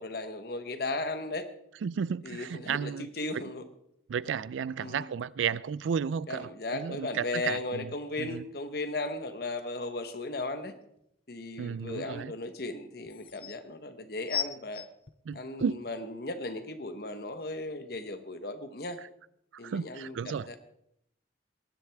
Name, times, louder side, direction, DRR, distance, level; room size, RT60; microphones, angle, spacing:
voice 1, 0.0-1.5 2.2-3.6 4.8-5.1 6.3-10.7 11.3-14.8 15.3-19.0 19.6-20.6, left 2 dB, 55° left, 1.1 m, -36 dB
voice 2, 1.8-3.1 4.1-7.9 8.2-8.4 11.6-12.3 15.3-15.8 19.6-20.5, right 7 dB, 90° right, 0.4 m, -33 dB
sound 1, 11.0-11.1 12.6-12.7 13.1-13.6 14.3-15.9 16.6-16.7, left 7 dB, 30° left, 0.3 m, -36 dB
19.0 x 10.5 x 3.5 m
head